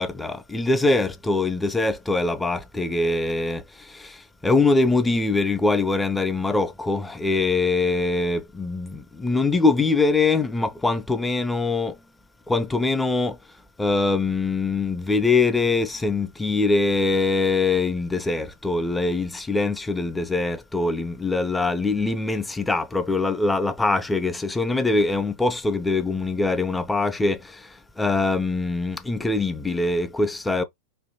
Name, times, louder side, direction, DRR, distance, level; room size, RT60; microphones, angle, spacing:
voice 1, 0.0-12.0 12.5-13.4 13.8-30.6, left 3 dB, 10° left, 0.5 m, -23 dB
3.2 x 2.2 x 2.8 m
figure-of-eight pair, 90°, 0 cm